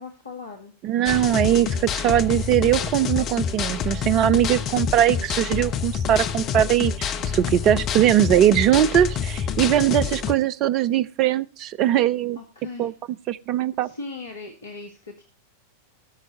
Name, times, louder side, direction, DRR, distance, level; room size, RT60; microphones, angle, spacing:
voice 1, 0.0-0.7 12.4-12.9 13.8-15.2, left 3 dB, 70° left, 3 dB, 1.6 m, -38 dB
voice 2, 0.8-12.4 12.8-12.9 13.3-13.9, right 11 dB, 35° right, 17 dB, 0.6 m, -21 dB
sound 1, 1.1-10.3, left 7 dB, 35° left, 1.0 m, -27 dB
18.5 x 6.4 x 4.2 m, 0.32 s
figure-of-eight pair, 90°, 0 cm